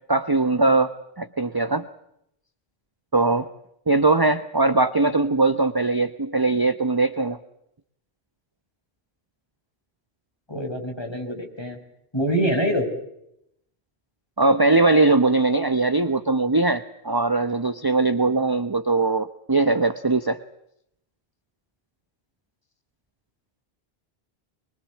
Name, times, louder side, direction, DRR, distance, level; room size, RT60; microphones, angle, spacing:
voice 1, 0.1-1.9 3.1-3.5 3.9-7.4 14.4-20.4, right 3 dB, 20° right, 10 dB, 1.0 m, -21 dB
voice 2, 10.5-11.8 12.1-12.9, equal, 25° left, 2 dB, 5.9 m, -25 dB
24.5 x 23.5 x 8.4 m, 0.78 s
omnidirectional pair, 1.1 m